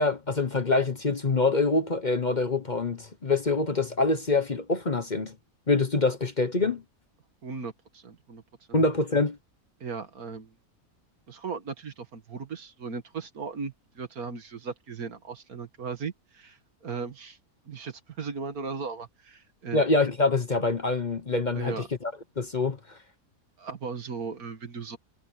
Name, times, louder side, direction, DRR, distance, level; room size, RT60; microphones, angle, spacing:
voice 1, 0.0-5.4 5.7-6.8 8.7-9.4 19.7-23.0, left 3 dB, 35° left, 1.2 m, -25 dB
voice 2, 7.4-8.4 9.8-10.5 11.3-17.4 17.7-19.8 21.5-21.9 23.6-25.0, right 5 dB, 75° right, 2.3 m, -37 dB
omnidirectional pair, 1.6 m